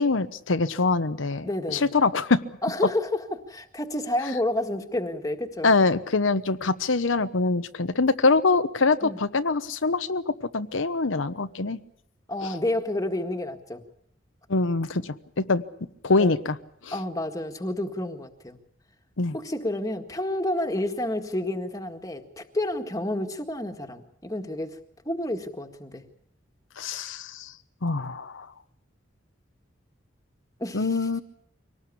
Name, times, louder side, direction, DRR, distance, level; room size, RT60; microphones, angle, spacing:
voice 1, 0.0-2.4 5.6-11.8 12.4-12.5 14.5-15.6 16.0-16.6 16.8-17.0 19.2-19.3 26.8-27.5 27.8-28.5 30.7-31.2, left 3 dB, 90° left, 11 dB, 1.0 m, -24 dB
voice 2, 1.4-1.9 2.6-5.7 9.0-9.2 12.3-13.8 16.2-16.4 16.9-18.6 19.3-24.8 25.1-26.0 30.6-31.1, left 1 dB, 20° left, 6 dB, 1.8 m, -30 dB
24.5 x 18.5 x 8.5 m, 0.70 s
head